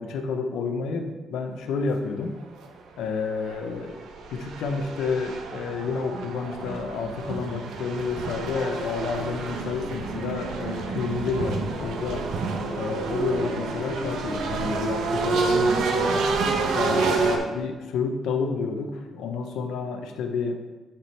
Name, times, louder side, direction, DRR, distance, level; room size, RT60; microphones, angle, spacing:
voice 1, 0.0-2.4 3.0-4.0 4.3-12.3 12.7-16.3 16.7-20.6, left 5 dB, 80° left, 5 dB, 0.7 m, -30 dB
sound 1, 2.6-2.7 3.2-17.4, right 4 dB, 80° right, 0.9 m, -28 dB
8.6 x 4.7 x 3.3 m, 1.2 s
cardioid pair, 90°, 0 cm